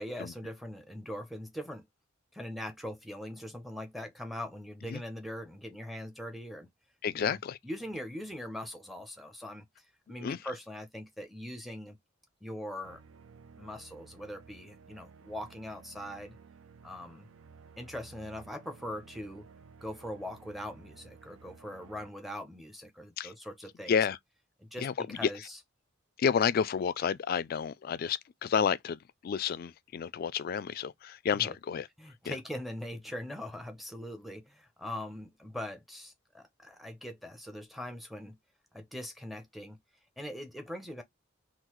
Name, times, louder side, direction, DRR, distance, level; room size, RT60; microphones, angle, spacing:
voice 1, 0.0-1.8 2.3-6.7 7.1-7.4 7.6-9.7 10.1-12.0 12.4-13.0 13.6-16.4 16.8-17.3 17.8-19.5 19.8-24.0 24.6-25.6 31.3-31.6 32.0-38.4 38.7-39.8 40.2-41.0, left 1 dB, ahead, 0.6 m, -41 dB
voice 2, 7.0-7.6 10.2-10.4 23.2-23.3 23.9-24.2 24.8-25.3 26.2-31.9 32.3-32.4, left 7 dB, 50° left, 0.3 m, -30 dB
sound 1, 12.8-22.1, right 5 dB, 80° right, 0.4 m, -55 dB
3.7 x 2.4 x 3.0 m
head